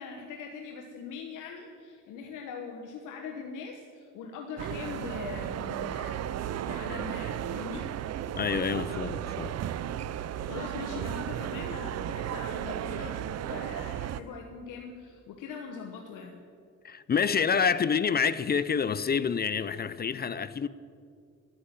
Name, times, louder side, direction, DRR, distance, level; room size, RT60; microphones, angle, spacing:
voice 1, 0.0-6.3 6.6-7.9 10.5-16.4, left 5 dB, 90° left, 1.2 m, -41 dB
sound 1, 4.6-14.2, right 11 dB, 60° right, 0.6 m, -34 dB
voice 2, 8.3-9.6 16.8-20.7, left 6 dB, 30° left, 0.5 m, -27 dB
12.0 x 8.6 x 8.9 m
cardioid pair, 90°, 30 cm